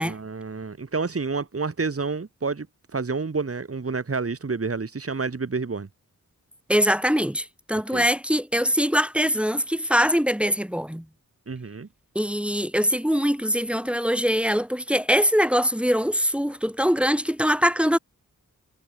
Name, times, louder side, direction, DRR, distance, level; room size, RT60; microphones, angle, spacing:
voice 1, 0.0-2.7 2.9-5.9 7.9-8.0 11.5-11.9, right 4 dB, 45° right, 4.2 m, -29 dB
voice 2, 6.7-11.0 12.1-18.0, equal, 5° right, 3.2 m, -22 dB
wide cardioid pair, 85°, 32 cm